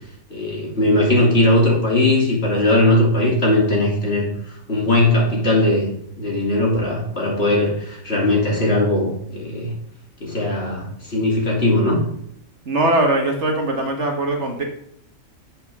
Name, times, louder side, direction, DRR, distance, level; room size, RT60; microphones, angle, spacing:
voice 1, 0.3-4.3 4.7-5.9 6.2-9.7 10.2-12.0, left 1 dB, 50° left, -3 dB, 3.3 m, -19 dB
voice 2, 12.6-14.6, right 2 dB, 60° right, 2 dB, 1.7 m, -20 dB
11.0 x 7.6 x 3.6 m, 0.72 s
omnidirectional pair, 1.4 m